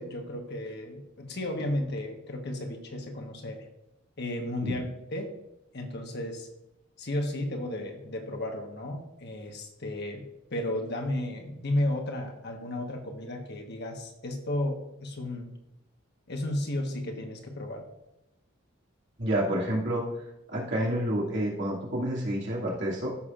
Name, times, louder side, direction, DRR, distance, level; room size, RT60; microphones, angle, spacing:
voice 1, 0.0-3.6 4.2-5.3 5.7-6.5 7.0-10.3 10.5-15.5 16.3-17.8, left 1 dB, 55° left, 3 dB, 1.3 m, -33 dB
voice 2, 19.2-20.0 20.5-23.1, right 1 dB, 60° right, -4 dB, 2.6 m, -29 dB
14.0 x 6.5 x 2.5 m, 0.87 s
head